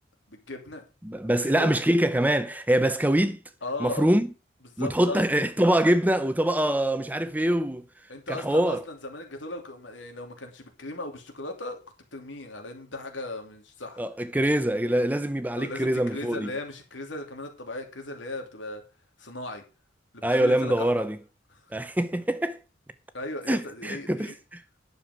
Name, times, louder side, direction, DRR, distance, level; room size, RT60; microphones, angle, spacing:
voice 1, 0.3-0.8 1.2-1.8 3.6-4.1 4.7-5.2 8.1-11.8 12.1-14.0 15.5-18.8 19.2-19.6 20.1-21.0 21.5-21.6 23.1-24.3, left 2 dB, 85° left, 2.9 m, -37 dB
voice 2, 1.0-3.4 3.8-4.3 4.8-7.8 8.3-8.8 14.0-16.5 20.2-21.2 21.7-22.6 23.5-24.3, right 1 dB, 10° right, 0.7 m, -24 dB
10.5 x 6.9 x 6.0 m
head